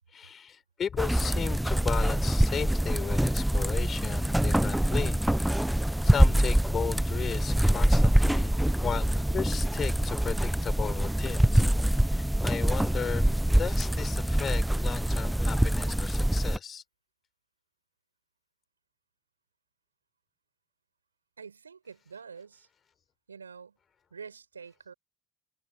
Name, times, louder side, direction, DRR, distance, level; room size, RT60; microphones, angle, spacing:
voice 1, 0.1-5.2 6.0-11.7 11.9-13.3 13.6-16.8, left 7 dB, 40° left, 6.0 m, -35 dB
sound 1, 1.0-16.6, right 1 dB, 5° right, 0.8 m, -25 dB
voice 2, 21.4-22.7 23.3-23.8 24.1-24.9, right 6 dB, 85° right, 5.7 m, -46 dB
figure-of-eight pair, 55°, 0 cm